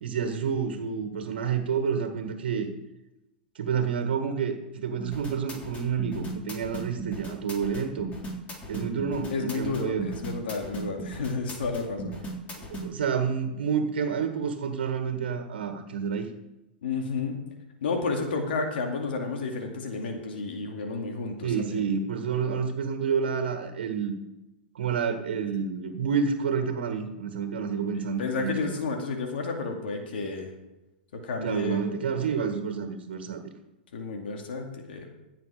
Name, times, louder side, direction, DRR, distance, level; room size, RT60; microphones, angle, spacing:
voice 1, 0.0-2.7 3.6-8.1 8.7-10.1 12.6-16.3 21.4-24.2 24.8-28.7 31.4-33.5, right 6 dB, 75° right, 6 dB, 1.7 m, -29 dB
sound 1, 5.0-12.9, right 1 dB, 25° left, 3.5 m, -38 dB
voice 2, 9.3-12.1 16.8-17.4 17.8-21.8 28.0-30.5 31.2-31.8 33.9-35.1, left 4 dB, 75° left, 2 dB, 2.4 m, -31 dB
15.5 x 7.6 x 5.0 m, 0.99 s
hypercardioid pair, 110°, 6 cm